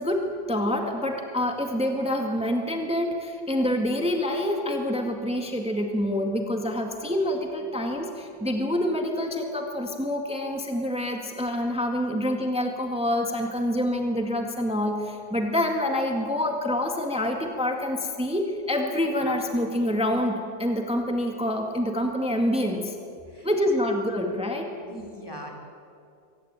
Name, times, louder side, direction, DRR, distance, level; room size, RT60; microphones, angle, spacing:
voice 1, 0.0-23.0 23.4-24.7, left 1 dB, 5° right, 3 dB, 1.8 m, -27 dB
voice 2, 24.8-25.5, equal, 15° left, 1 dB, 3.8 m, -42 dB
24.0 x 17.0 x 8.9 m, 2.4 s
omnidirectional pair, 1.7 m